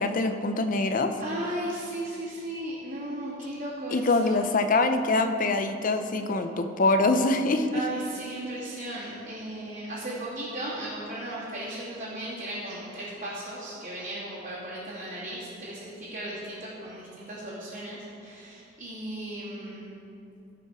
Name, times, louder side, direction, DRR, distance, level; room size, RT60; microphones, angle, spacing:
voice 1, 0.0-1.1 3.9-7.8, left 2 dB, 45° left, 7 dB, 0.6 m, -24 dB
voice 2, 1.2-4.6 7.7-19.9, right 1 dB, 45° right, -11 dB, 2.5 m, -36 dB
16.5 x 5.5 x 5.0 m, 2.7 s
head